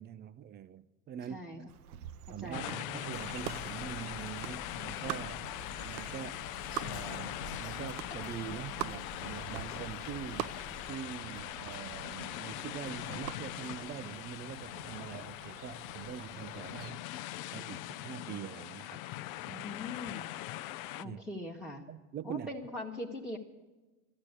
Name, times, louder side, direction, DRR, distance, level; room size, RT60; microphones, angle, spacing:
voice 1, 0.0-1.7 2.3-6.5 6.8-17.0 17.5-19.0 19.5-19.7 21.0-21.2 21.9-22.5, right 9 dB, 25° right, 0.4 m, -44 dB
voice 2, 1.3-1.6 2.3-2.9 19.6-20.3 21.0-21.9 22.2-23.4, left 1 dB, ahead, 1.2 m, -41 dB
sound 1, 1.7-16.9, right 13 dB, 80° right, 0.6 m, -46 dB
sound 2, 2.5-21.0, left 15 dB, 65° left, 0.6 m, -42 dB
Whispering, 3.1-10.9, left 4 dB, 40° left, 1.4 m, -49 dB
13.5 x 11.5 x 8.2 m
hypercardioid pair, 100°, 44 cm